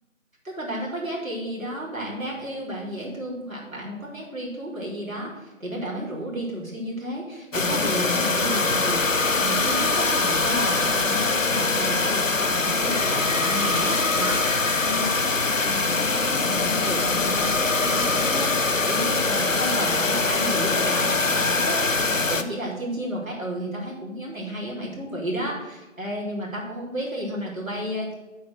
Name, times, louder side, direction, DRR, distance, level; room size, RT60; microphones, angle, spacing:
voice 1, 0.4-15.1 15.6-28.1, equal, 80° right, -4 dB, 4.1 m, -32 dB
sound 1, 7.5-22.4, left 3 dB, 70° left, 0.8 m, -23 dB
8.6 x 6.7 x 6.5 m, 1.1 s
figure-of-eight pair, 180°, 40 cm